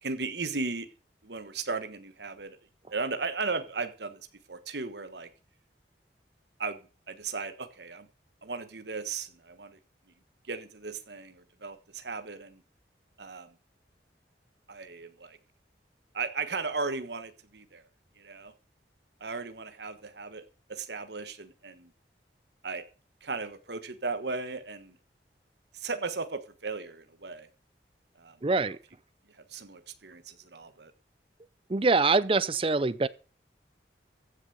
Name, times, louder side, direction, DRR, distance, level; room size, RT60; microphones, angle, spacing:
voice 1, 0.0-0.9 1.2-2.6 2.9-5.3 6.6-6.8 7.1-8.1 8.4-9.8 10.5-12.6 13.2-13.5 14.7-15.4 16.1-17.8 18.2-18.5 19.2-20.4 20.7-21.9 22.6-22.8 23.2-25.0 25.7-27.5 28.2-28.4 28.7-28.8 29.5-30.9, right 4 dB, 70° right, 1.4 m, -36 dB
voice 2, 28.4-28.8 31.7-33.1, right 3 dB, 30° right, 0.5 m, -24 dB
15.0 x 6.9 x 6.7 m
head